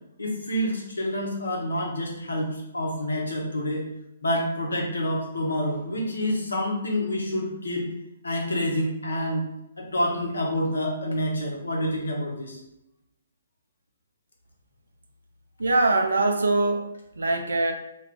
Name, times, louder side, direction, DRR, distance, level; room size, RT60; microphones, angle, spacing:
voice 1, 0.2-3.9 4.2-7.9 8.2-9.4 9.8-12.6, left 1 dB, 70° left, 0 dB, 0.7 m, -28 dB
voice 2, 15.6-17.7, right 2 dB, 65° right, 5 dB, 0.4 m, -23 dB
2.3 x 2.3 x 3.5 m, 0.84 s
figure-of-eight pair, 125°, 0 cm